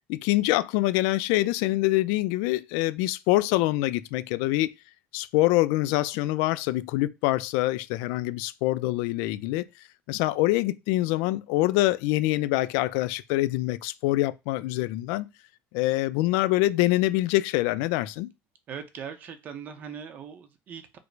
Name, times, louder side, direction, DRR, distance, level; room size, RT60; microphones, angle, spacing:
voice 1, 0.1-4.7 5.1-9.7 10.1-15.3 15.7-18.3, left 18 dB, 85° left, 0.3 m, -25 dB
voice 2, 18.7-21.0, right 7 dB, 35° right, 0.5 m, -40 dB
5.0 x 2.0 x 4.5 m
cardioid pair, 175°, 5 cm